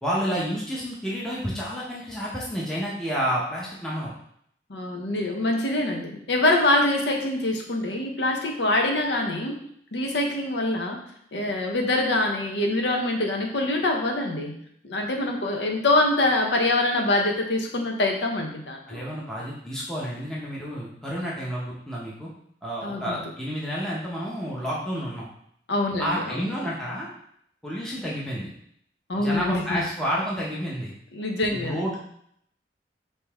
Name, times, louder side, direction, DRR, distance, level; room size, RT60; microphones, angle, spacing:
voice 1, 0.0-4.1 18.9-22.3 22.6-25.3 26.0-27.1 27.6-28.5 29.2-30.9 31.5-32.0, equal, 5° left, -6 dB, 0.7 m, -30 dB
voice 2, 4.7-9.6 9.9-11.0 11.3-14.6 14.8-19.0 22.8-23.2 25.7-26.4 29.1-29.8 31.1-31.8, left 2 dB, 80° left, 2 dB, 0.8 m, -24 dB
5.2 x 2.8 x 3.5 m, 0.70 s
head